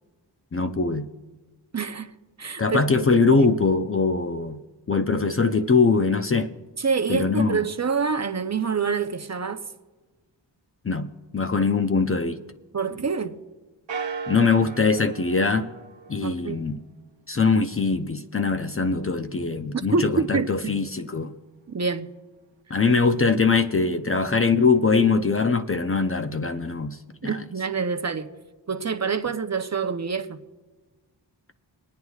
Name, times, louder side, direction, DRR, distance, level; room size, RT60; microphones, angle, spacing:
voice 1, 0.5-1.1 2.6-4.6 4.9-6.5 7.1-7.6 10.8-11.1 11.3-12.4 14.3-15.7 16.1-16.8 17.3-21.3 22.7-27.4, left 4 dB, 30° left, 0.5 m, -22 dB
voice 2, 1.7-2.8 3.3-3.5 6.8-9.6 12.7-13.3 16.2-16.6 19.9-20.7 21.7-22.1 27.2-28.3 28.7-30.4, right 5 dB, 35° right, 0.7 m, -26 dB
sound 1, 13.9-16.6, right 5 dB, 70° right, 0.9 m, -36 dB
28.0 x 9.4 x 2.4 m
wide cardioid pair, 80°, 44 cm